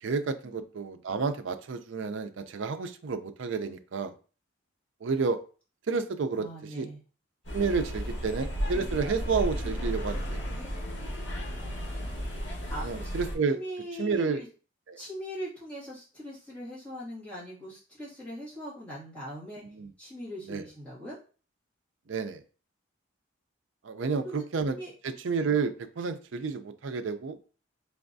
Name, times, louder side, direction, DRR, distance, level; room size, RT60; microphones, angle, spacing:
voice 1, 0.0-4.1 5.0-5.4 5.9-6.5 6.8-6.9 7.5-10.4 12.8-13.6 14.0-14.4 14.9-15.0 19.7-19.9 20.5-20.6 22.1-22.4 23.8-24.8 25.0-27.4, right 5 dB, 70° right, 9 dB, 0.5 m, -30 dB
voice 2, 6.4-7.0 11.5-12.2 12.7-13.1 13.5-14.5 15.0-19.6 20.0-21.2 24.2-24.9, equal, 5° left, -9 dB, 1.9 m, -41 dB
sound 1, 7.4-13.3, equal, 65° left, 1.5 m, -34 dB
3.9 x 3.4 x 2.6 m, 0.37 s
head